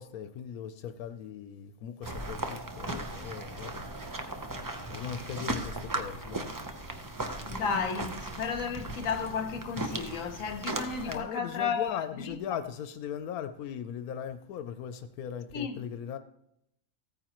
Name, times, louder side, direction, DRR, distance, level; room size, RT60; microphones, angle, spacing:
voice 1, 0.0-3.8 4.9-6.5 11.0-16.2, left 8 dB, 90° left, 1.1 m, -39 dB
sound 1, 2.0-11.2, right 2 dB, 25° right, 0.4 m, -37 dB
voice 2, 7.4-12.4 15.5-15.8, left 6 dB, 70° left, 1.3 m, -33 dB
15.5 x 9.0 x 3.0 m
omnidirectional pair, 1.5 m